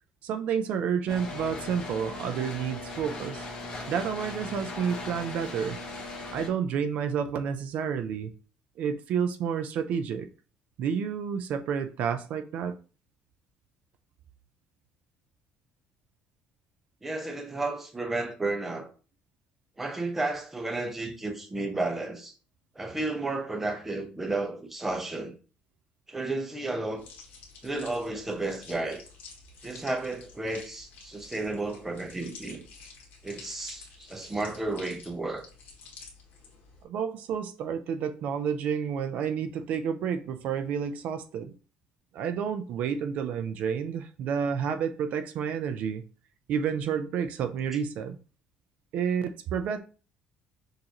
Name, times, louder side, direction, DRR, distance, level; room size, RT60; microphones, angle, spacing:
voice 1, 0.2-3.5 3.9-5.8 6.3-8.3 8.8-10.3 10.8-12.8 36.8-41.5 42.1-46.0 46.5-48.2 48.9-49.8, right 7 dB, 55° right, 0.4 m, -30 dB
sound 1, 1.1-6.5, left 2 dB, 30° left, 1.0 m, -38 dB
voice 2, 17.0-18.9 19.8-22.3 22.8-25.3 26.1-27.0 27.6-29.0 29.6-32.6 33.2-35.4, right 2 dB, 10° right, 0.6 m, -32 dB
sound 2, 27.0-36.8, left 4 dB, 60° left, 1.6 m, -50 dB
6.3 x 2.6 x 2.9 m
cardioid pair, 175°, 3 cm